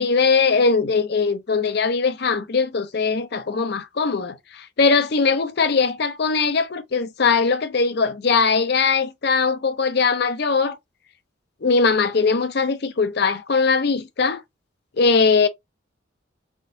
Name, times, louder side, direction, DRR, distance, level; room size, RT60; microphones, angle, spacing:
voice 1, 0.0-10.8 11.6-14.4 15.0-15.5, left 4 dB, 55° left, 0.5 m, -20 dB
3.8 x 3.5 x 2.6 m
head